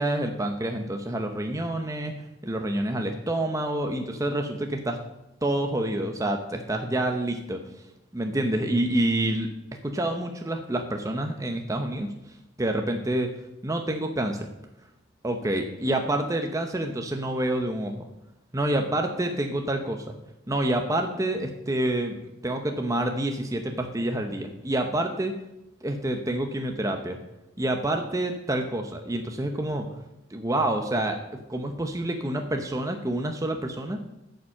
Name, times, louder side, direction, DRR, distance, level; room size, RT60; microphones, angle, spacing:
voice 1, 0.0-5.0 5.4-7.6 8.1-9.5 9.8-12.1 12.6-13.3 13.6-14.5 15.2-18.1 18.5-20.1 20.5-22.2 22.4-25.3 25.8-27.2 27.6-29.9 30.3-34.0, right 1 dB, 20° right, 4 dB, 0.8 m, -28 dB
9.3 x 7.1 x 7.5 m, 0.87 s
head